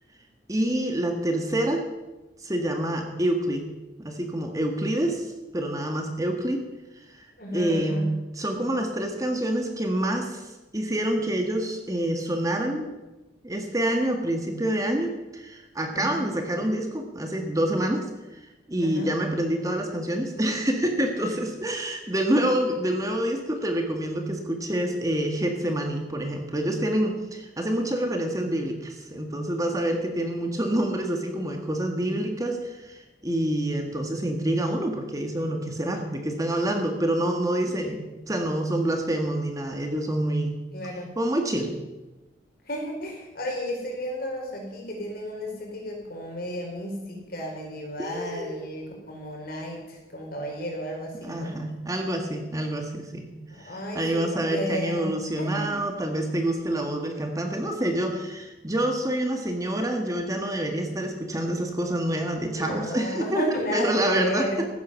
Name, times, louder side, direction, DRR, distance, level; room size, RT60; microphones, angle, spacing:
voice 1, 0.5-1.8 2.4-3.6 4.0-6.6 7.1-7.3 7.5-8.1 8.4-12.9 13.4-38.0 38.3-40.6 41.2-41.7 48.0-48.5 51.2-53.3 53.6-64.5, right 1 dB, 20° right, 3 dB, 1.6 m, -27 dB
voice 2, 7.4-8.1 15.9-16.3 18.8-19.1 21.2-21.3 40.7-41.1 42.6-51.5 53.5-55.1 55.4-55.7 62.5-64.6, equal, 50° left, 0 dB, 4.7 m, -33 dB
15.5 x 11.0 x 7.1 m, 1.1 s
head